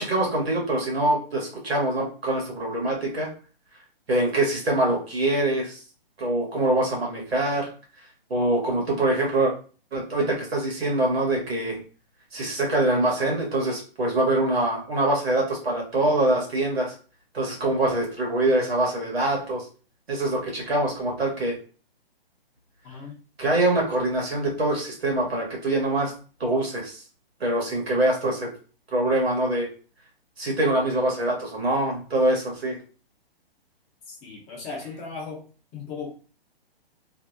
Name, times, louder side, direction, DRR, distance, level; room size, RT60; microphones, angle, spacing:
voice 1, 0.0-3.3 4.1-5.8 6.2-7.7 8.3-9.5 9.9-11.8 12.3-16.9 17.3-19.6 20.1-21.6 23.4-26.1 26.4-27.0 27.4-28.5 28.9-29.7 30.4-32.8, right 1 dB, 85° right, -1 dB, 1.2 m, -24 dB
voice 2, 22.8-23.2 34.1-35.5 35.7-36.1, left 4 dB, 20° left, -2 dB, 0.7 m, -37 dB
2.6 x 2.1 x 2.4 m, 0.38 s
hypercardioid pair, 130°, 30 cm